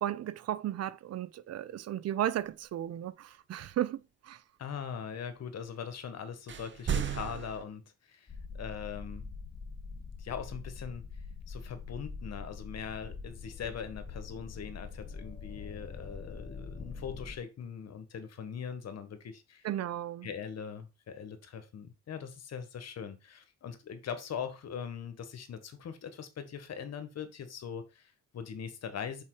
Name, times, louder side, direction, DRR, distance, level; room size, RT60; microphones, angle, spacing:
voice 1, 0.0-4.4 19.6-20.3, right 12 dB, 55° right, 0.5 m, -34 dB
voice 2, 4.6-9.3 10.2-11.0 11.5-19.7 20.2-29.2, left 7 dB, 55° left, 1.4 m, -41 dB
sound 1, 6.5-7.6, right 8 dB, 40° right, 0.9 m, -33 dB
sound 2, 8.3-17.4, left 4 dB, 25° left, 1.0 m, -44 dB
5.6 x 4.8 x 4.8 m
cardioid pair, 90°, 30 cm